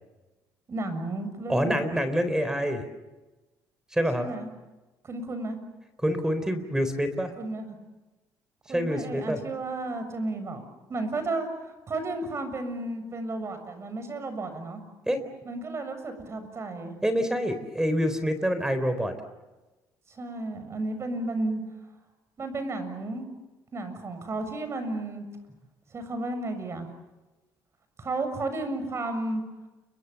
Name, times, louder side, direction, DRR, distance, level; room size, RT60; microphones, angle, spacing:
voice 1, 0.7-1.9 4.2-4.5 5.0-5.6 7.4-7.8 8.7-10.6 10.9-14.8 15.5-17.0 20.1-21.6 22.4-23.3 23.7-25.3 25.9-26.9 28.0-29.4, right 2 dB, 35° right, 9 dB, 7.1 m, -33 dB
voice 2, 1.5-2.8 3.9-4.3 6.0-7.3 8.7-9.4 15.1-15.2 17.0-19.1, equal, 10° right, 10 dB, 3.9 m, -26 dB
30.0 x 25.0 x 7.1 m, 1.1 s
cardioid pair, 95°, 8 cm